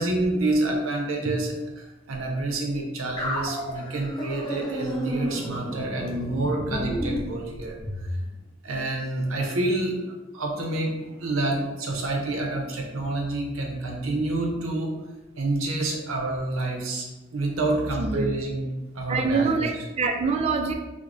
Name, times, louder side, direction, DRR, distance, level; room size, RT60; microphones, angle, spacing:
voice 1, 0.0-7.8 8.6-14.9 15.4-17.1 17.3-18.7 18.9-19.8, right 2 dB, 85° right, 1 dB, 0.7 m, -28 dB
sound 1, 3.2-8.1, equal, 20° left, 0.5 m, -32 dB
voice 2, 18.0-18.3 19.1-20.7, right 4 dB, 30° right, 4 dB, 0.3 m, -25 dB
4.5 x 2.1 x 2.5 m, 1.1 s
head